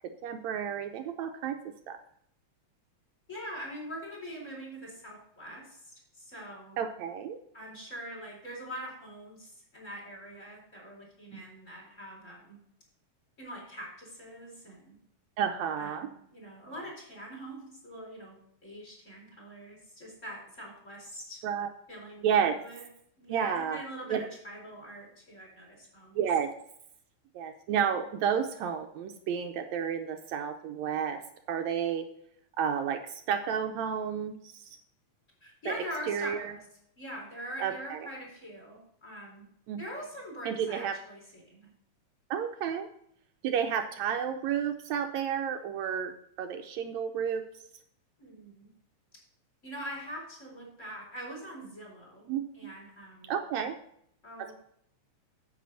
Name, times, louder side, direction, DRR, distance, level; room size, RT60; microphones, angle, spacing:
voice 1, 0.2-1.6 1.9-2.0 6.8-7.4 11.3-11.4 15.4-16.1 21.4-21.7 22.2-22.6 23.3-23.8 24.1-24.2 26.2-26.5 27.4-31.2 31.5-32.1 32.6-34.8 35.7-35.8 36.1-36.5 37.6-38.1 39.7-39.8 40.5-41.0 42.3-42.9 43.4-46.1 46.4-47.4 52.3-52.5 53.2-53.8 54.4-54.5, right 8 dB, 80° right, 5 dB, 1.9 m, -31 dB
voice 2, 3.3-6.8 7.5-12.6 13.4-15.0 15.8-18.4 18.6-21.4 21.9-22.3 22.6-22.9 23.2-26.2 35.4-36.7 37.0-39.5 39.8-41.7 48.2-48.7 49.6-52.3 52.5-53.7 54.2-54.5, equal, 25° left, -2 dB, 4.3 m, -43 dB
9.4 x 7.7 x 4.1 m, 0.70 s
omnidirectional pair, 3.3 m